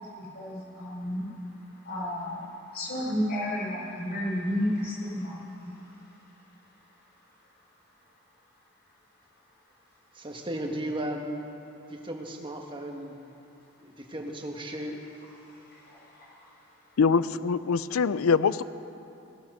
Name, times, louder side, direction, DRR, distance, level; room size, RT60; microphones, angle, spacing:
voice 1, 0.0-7.5 8.0-8.1 15.4-17.0, equal, 50° left, -4 dB, 4.5 m, -34 dB
voice 2, 10.1-11.5 11.9-13.1 13.8-15.0, right 1 dB, 25° right, 2 dB, 1.3 m, -35 dB
voice 3, 17.0-18.6, left 5 dB, 90° left, 16 dB, 0.5 m, -23 dB
15.5 x 11.5 x 6.6 m, 3.0 s
head